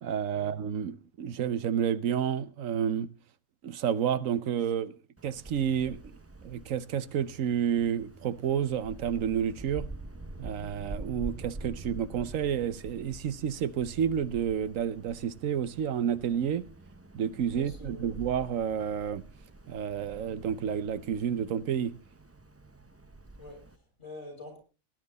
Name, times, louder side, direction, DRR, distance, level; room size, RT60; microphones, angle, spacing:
voice 1, 0.0-3.1 3.6-4.9 5.2-6.2 6.4-9.9 10.4-16.7 17.1-19.2 19.7-21.9, right 8 dB, 85° right, 1.2 m, -30 dB
Wind, 5.2-23.8, right 2 dB, 15° right, 0.5 m, -46 dB
voice 2, 17.5-18.1 23.4-24.6, left 2 dB, 60° left, 6.9 m, -46 dB
18.0 x 10.0 x 4.1 m
omnidirectional pair, 1.3 m